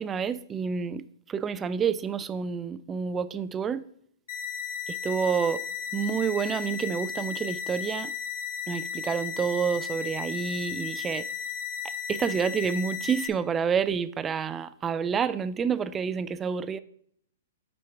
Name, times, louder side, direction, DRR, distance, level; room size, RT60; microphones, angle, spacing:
voice 1, 0.0-3.8 4.9-5.6 5.9-8.1 8.7-11.3 12.1-16.8, right 6 dB, 15° right, 0.3 m, -29 dB
sound 1, 4.3-13.3, left 8 dB, 70° left, 1.2 m, -35 dB
7.5 x 5.2 x 4.5 m
hypercardioid pair, 145°, 0 cm